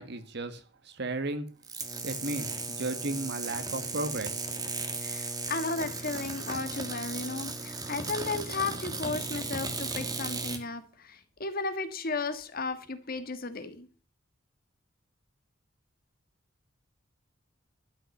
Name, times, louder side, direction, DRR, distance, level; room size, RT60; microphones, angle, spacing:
voice 1, 0.0-1.4 2.0-4.4, right 2 dB, 60° right, 1.6 m, -34 dB
sound 1, 1.6-10.6, right 3 dB, 20° right, 1.7 m, -36 dB
voice 2, 5.0-13.9, left 3 dB, 50° left, 1.5 m, -34 dB
12.5 x 5.7 x 6.4 m
head